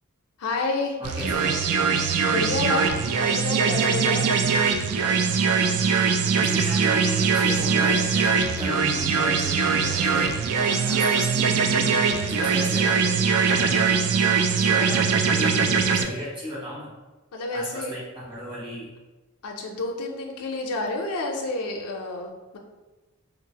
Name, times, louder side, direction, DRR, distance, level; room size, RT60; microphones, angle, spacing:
voice 1, 0.4-1.0 2.2-4.3 17.3-17.9 19.4-22.6, left 2 dB, 90° left, 1 dB, 0.5 m, -29 dB
voice 2, 1.0-1.6 6.4-11.9 12.1-14.2 14.6-16.9 17.5-18.9, left 1 dB, 25° right, -6 dB, 1.1 m, -35 dB
sound 1, 1.0-16.0, right 5 dB, 75° right, 0.3 m, -22 dB
3.8 x 2.4 x 2.7 m, 1.1 s
head